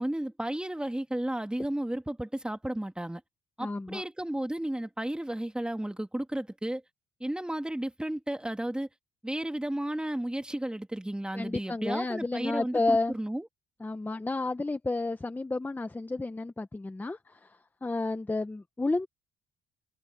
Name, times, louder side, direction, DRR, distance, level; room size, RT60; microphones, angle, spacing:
voice 1, 0.0-3.2 3.6-6.8 7.2-8.9 9.2-13.5, right 1 dB, 5° right, 1.8 m, -33 dB
voice 2, 3.6-4.0 11.3-13.1 13.8-17.5 17.8-19.1, left 2 dB, 10° left, 0.7 m, -31 dB
open air
cardioid pair, 110°, 17 cm